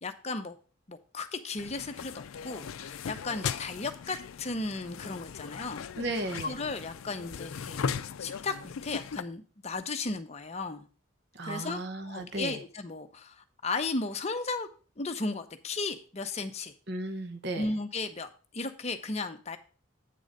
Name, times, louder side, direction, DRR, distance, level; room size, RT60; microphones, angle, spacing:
voice 1, 0.0-0.6 0.9-5.8 6.4-7.9 8.2-10.9 11.4-14.7 15.0-16.7 17.5-19.6, left 3 dB, 30° left, 7 dB, 0.7 m, -35 dB
sound 1, 1.6-9.2, left 6 dB, 90° left, 0.4 m, -38 dB
voice 2, 6.0-6.6 11.3-12.6 16.9-17.7, right 2 dB, 55° right, 7 dB, 0.9 m, -35 dB
8.4 x 3.9 x 6.5 m, 0.38 s
head